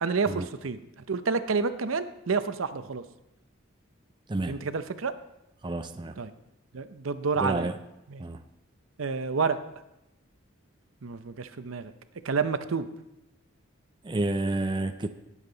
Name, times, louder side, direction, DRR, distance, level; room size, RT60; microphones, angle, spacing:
voice 1, 0.0-0.8 1.1-3.0 4.5-5.1 6.2-6.3 6.7-7.7 8.1-8.2 9.0-9.6 11.0-11.9 12.2-12.9 14.7-14.9, right 5 dB, 80° right, 11 dB, 0.7 m, -29 dB
voice 2, 5.6-6.2 7.4-7.7 8.2-8.4 14.0-15.1, right 2 dB, 20° right, 9 dB, 0.4 m, -30 dB
18.0 x 7.4 x 3.9 m, 0.91 s
head